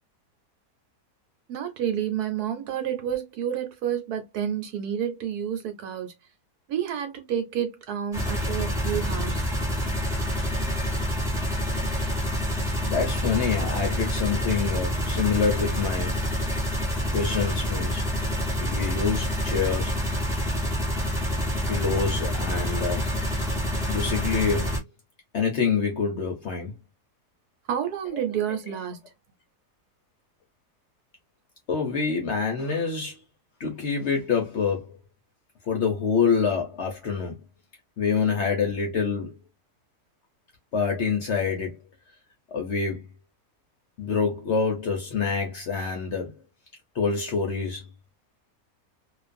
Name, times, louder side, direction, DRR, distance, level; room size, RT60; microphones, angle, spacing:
voice 1, 1.5-6.1 6.7-9.5 27.7-29.0, right 9 dB, 75° right, 1.2 m, -29 dB
sound 1, 8.1-24.8, equal, ahead, 0.8 m, -27 dB
voice 2, 12.9-16.2 17.1-18.1 18.6-20.0 21.7-23.1 23.9-24.8 25.3-26.8 31.7-33.2 33.6-34.9 35.7-37.4 38.0-39.3 40.7-41.8 42.5-43.0 44.0-46.3 46.9-47.8, left 5 dB, 60° left, 0.8 m, -26 dB
2.5 x 2.4 x 2.4 m
omnidirectional pair, 1.7 m